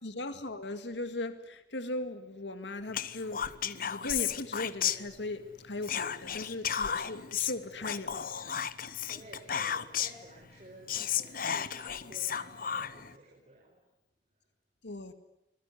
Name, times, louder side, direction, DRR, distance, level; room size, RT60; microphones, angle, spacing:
voice 1, 0.0-8.1 14.8-15.1, left 2 dB, 85° left, 2.0 m, -38 dB
Whispering, 2.9-5.5 5.8-10.3 10.6-10.7 10.9-13.1, left 8 dB, 55° left, 1.0 m, -34 dB
voice 2, 9.1-13.9, right 1 dB, 40° right, 5.9 m, -53 dB
26.0 x 21.5 x 9.9 m
head